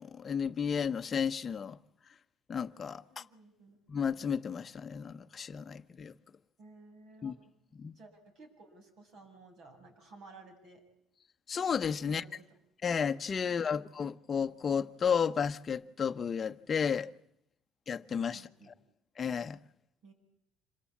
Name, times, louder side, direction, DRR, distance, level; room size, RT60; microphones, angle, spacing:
voice 1, 0.0-1.8 2.5-3.2 3.9-6.1 7.2-7.3 7.8-8.0 11.5-12.2 12.8-17.1 17.9-18.7 19.2-19.6, left 7 dB, 30° left, 1.0 m, -33 dB
voice 2, 3.1-3.8 6.6-7.4 7.9-10.8 12.1-12.5 18.3-18.7 20.0-20.1, right 3 dB, 55° right, 7.6 m, -55 dB
27.0 x 22.0 x 8.6 m
cardioid pair, 135°, 0 cm